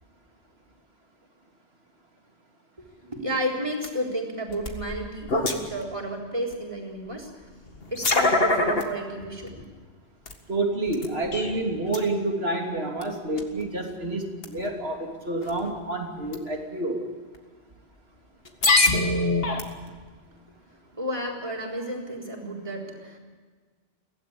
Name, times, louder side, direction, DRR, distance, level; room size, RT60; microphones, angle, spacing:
voice 1, 3.0-7.5 7.9-9.6 21.0-23.2, equal, 30° right, -1 dB, 4.1 m, -32 dB
sound 1, 3.8-3.9 4.5-5.8 6.5-6.6 7.7-8.8 9.5-9.6 10.3-10.4 10.9-11.6 11.9-12.0 13.0-13.1 13.4-13.6 14.4-14.7 15.4-15.7 16.3-16.4 17.3-17.4 18.5-20.0, left 2 dB, 60° left, 2.1 m, -24 dB
voice 2, 10.5-17.0, right 2 dB, 65° right, 2 dB, 3.3 m, -28 dB
23.5 x 16.5 x 8.7 m, 1.4 s
omnidirectional pair, 1.1 m